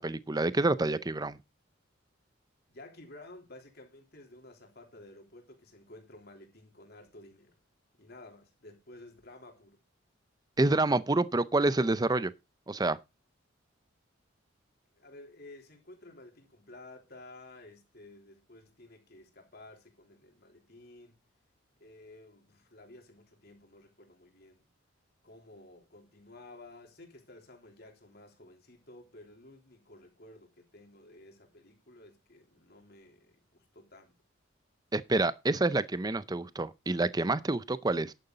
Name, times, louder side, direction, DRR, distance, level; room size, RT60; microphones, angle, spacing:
voice 1, 0.0-1.4 10.6-12.3 12.7-13.0 34.9-38.1, right 2 dB, 20° right, 0.5 m, -28 dB
voice 2, 2.7-7.5 8.0-9.8 14.9-21.2 21.8-24.7 25.2-34.1, left 2 dB, 50° left, 3.4 m, -53 dB
11.0 x 9.4 x 3.9 m
head